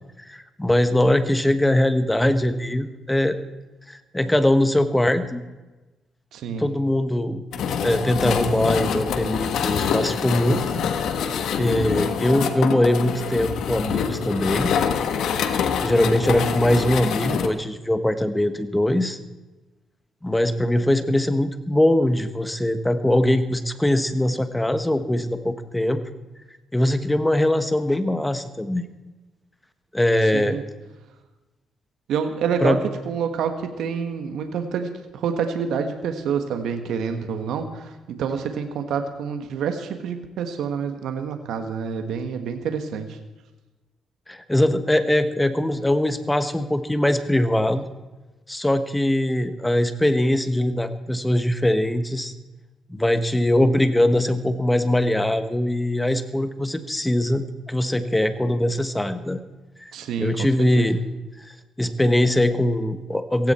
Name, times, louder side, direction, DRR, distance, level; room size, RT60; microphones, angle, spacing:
voice 1, 0.2-3.4 3.9-5.4 6.5-10.6 11.6-14.7 15.8-19.2 20.2-26.0 26.7-28.8 29.9-30.6 32.6-32.8 44.3-47.9 48.5-52.3 52.9-59.4 60.2-61.0 61.4-61.5 61.8-63.5, left 1 dB, 10° left, 10 dB, 1.3 m, -21 dB
voice 2, 6.3-6.7 30.3-30.6 32.1-32.8 33.0-43.2 59.9-60.5 60.7-60.9, right 6 dB, 80° right, 6 dB, 1.5 m, -27 dB
sound 1, 7.5-17.5, left 7 dB, 75° left, 1.3 m, -25 dB
16.5 x 16.0 x 4.4 m, 1.1 s
cardioid pair, 90°, 0 cm